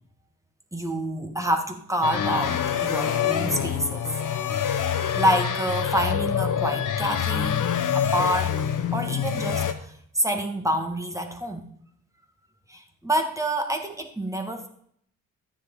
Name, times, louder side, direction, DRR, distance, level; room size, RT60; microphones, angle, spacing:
voice 1, 0.7-4.0 5.1-7.6 7.9-11.7 12.7-14.7, equal, 10° right, 4 dB, 1.7 m, -27 dB
sound 1, 2.0-9.7, left 8 dB, 55° left, 1.1 m, -26 dB
12.0 x 9.8 x 3.8 m, 0.65 s
supercardioid pair, 65°, 37 cm